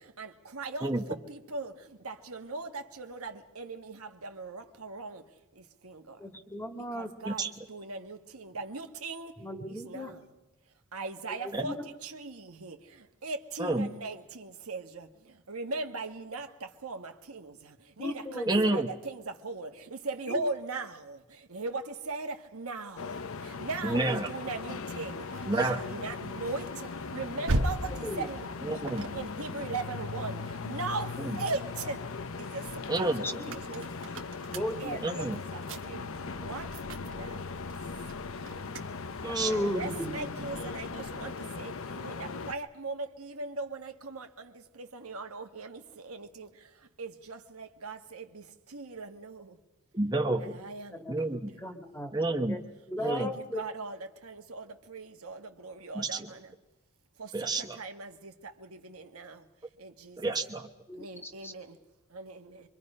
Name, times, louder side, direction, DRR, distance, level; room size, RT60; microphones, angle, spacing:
voice 1, 0.2-0.9 1.3-1.7 2.0-5.2 5.8-6.0 6.9-9.3 9.9-10.1 10.9-11.8 12.0-12.8 13.2-15.1 15.5-16.5 16.8-17.5 18.0-21.2 21.5-23.2 23.6-25.2 25.6-26.6 27.1-28.8 29.1-31.1 31.4-32.0 32.4-32.6 33.0-33.1 33.4-33.8 34.8-35.6 35.9-36.1 36.4-36.6 37.0-37.4 39.4-41.3 41.6-41.7 42.0-44.5 44.8-46.5 47.0-48.4 48.7-49.4 50.4-51.0 53.0-54.0 54.2-56.4 57.2-57.5 57.8-58.3 58.6-59.4 59.8-60.2 61.0-61.7 62.1-62.5, right 3 dB, 80° right, 1.5 m, -39 dB
voice 2, 6.2-7.1 9.4-10.1 11.4-11.7 18.0-18.6 20.3-20.4 24.1-24.2 28.0-28.2 33.2-33.4 34.5-35.0 39.2-40.5 50.9-51.3 51.6-52.1 52.5-52.6 52.9-53.6 60.9-61.5, left 1 dB, 10° left, 1.8 m, -35 dB
voice 3, 13.6-13.9 18.5-18.9 23.8-24.3 25.5-25.8 28.6-29.1 31.2-31.3 32.9-33.2 35.0-35.4 39.2-39.5 49.9-50.6 51.1-51.6 52.1-52.6 53.0-53.3 55.9-56.3 57.3-57.8 60.2-60.7, right 2 dB, 20° right, 1.1 m, -29 dB
sound 1, 23.0-42.5, left 4 dB, 70° left, 0.8 m, -39 dB
sound 2, 24.6-31.1 31.6-41.4, right 1 dB, 60° right, 1.2 m, -40 dB
24.5 x 24.0 x 5.5 m
head